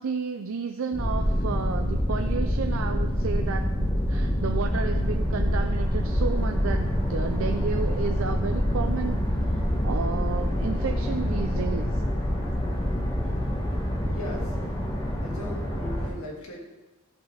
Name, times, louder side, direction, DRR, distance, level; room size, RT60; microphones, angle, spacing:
voice 1, 0.0-9.2 9.5-12.0, right 5 dB, 70° right, 6 dB, 0.5 m, -32 dB
sound 1, 0.9-16.1, equal, 20° left, 1.7 m, -26 dB
voice 2, 13.9-14.7 15.2-16.6, left 1 dB, 75° left, 0 dB, 1.8 m, -39 dB
13.5 x 5.6 x 3.4 m, 1.1 s
head